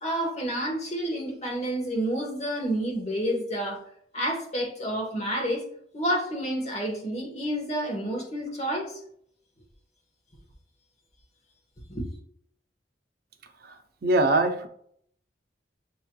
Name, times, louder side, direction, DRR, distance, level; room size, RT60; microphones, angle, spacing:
voice 1, 0.0-3.8 4.1-5.6 5.9-9.0 11.9-12.1, right 1 dB, 40° left, 0 dB, 1.3 m, -29 dB
voice 2, 14.0-14.7, right 2 dB, 60° right, 5 dB, 0.6 m, -22 dB
6.8 x 3.0 x 2.3 m, 0.65 s
head